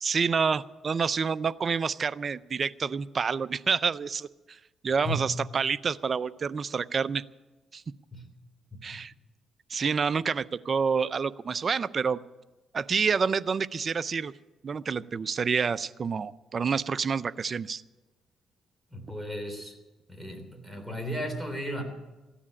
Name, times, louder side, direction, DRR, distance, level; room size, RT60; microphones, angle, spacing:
voice 1, 0.0-4.6 4.8-7.2 7.7-7.8 8.8-9.1 9.7-12.2 12.7-14.3 14.6-17.8, right 5 dB, 40° right, 16 dB, 0.5 m, -28 dB
voice 2, 8.7-9.0 18.9-19.7 20.1-21.8, equal, ahead, 4 dB, 3.4 m, -35 dB
15.0 x 10.0 x 8.5 m, 1.1 s
cardioid pair, 90°, 0 cm